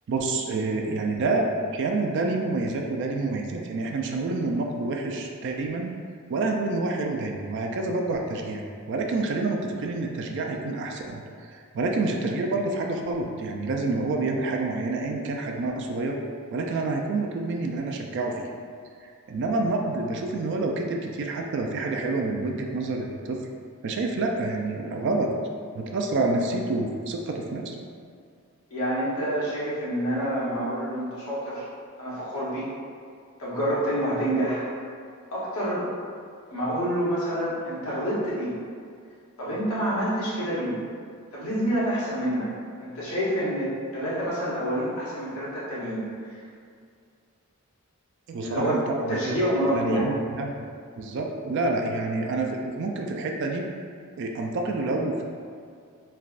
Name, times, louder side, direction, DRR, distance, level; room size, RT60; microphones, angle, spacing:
voice 1, 0.1-6.0 6.3-11.2 11.7-16.2 16.5-18.5 19.3-23.4 23.8-25.3 25.7-27.7 48.3-49.2 49.6-50.5 51.0-53.7 54.2-55.2, right 3 dB, 55° right, 2 dB, 0.3 m, -28 dB
voice 2, 28.7-31.7 32.0-32.7 33.4-34.7 35.3-35.9 36.5-38.5 39.4-40.8 41.3-42.5 42.8-46.4 48.4-48.7 49.1-50.1, equal, 85° left, -8 dB, 1.0 m, -27 dB
3.3 x 2.3 x 2.4 m, 2.2 s
head